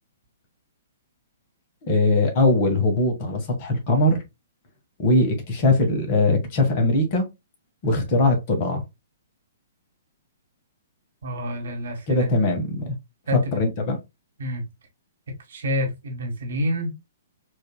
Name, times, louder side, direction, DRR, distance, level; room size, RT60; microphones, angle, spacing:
voice 1, 1.8-4.2 5.0-7.3 7.8-8.8 12.1-13.0 13.5-14.0, left 2 dB, 40° left, 1.4 m, -21 dB
voice 2, 11.2-12.3 13.3-13.4 14.4-14.7 15.5-17.1, left 1 dB, 60° right, 1.4 m, -28 dB
4.7 x 2.8 x 2.2 m
figure-of-eight pair, 120°, 0 cm